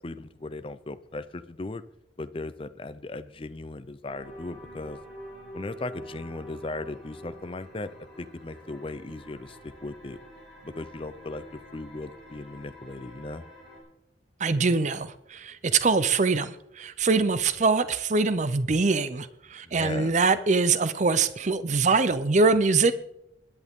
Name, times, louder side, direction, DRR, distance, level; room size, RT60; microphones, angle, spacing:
voice 1, 0.0-1.8 2.2-5.0 5.5-7.9 8.2-10.2 10.6-11.4 11.7-13.4 19.6-20.1, left 2 dB, 30° left, 12 dB, 0.5 m, -37 dB
sound 1, 4.0-13.8, equal, ahead, 7.2 m, -47 dB
voice 2, 14.4-22.9, right 4 dB, 40° right, 13 dB, 0.5 m, -23 dB
21.0 x 10.5 x 3.6 m, 0.79 s
head